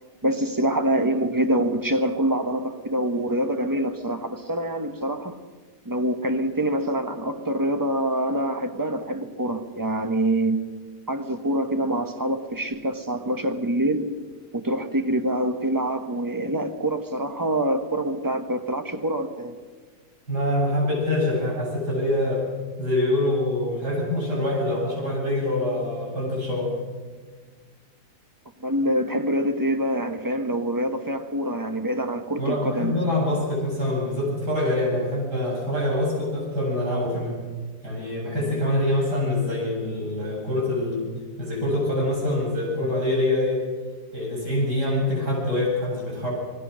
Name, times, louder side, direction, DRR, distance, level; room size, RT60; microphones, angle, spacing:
voice 1, 0.2-5.4 5.8-10.6 11.1-14.1 14.5-19.5 28.6-33.0, right 1 dB, 15° right, 7 dB, 1.2 m, -25 dB
voice 2, 20.3-22.4 22.8-26.7 32.4-37.4 37.8-41.0 41.4-43.6 44.1-46.3, left 1 dB, 90° right, -3 dB, 8.5 m, -25 dB
27.5 x 20.0 x 6.4 m, 1.5 s
omnidirectional pair, 1.7 m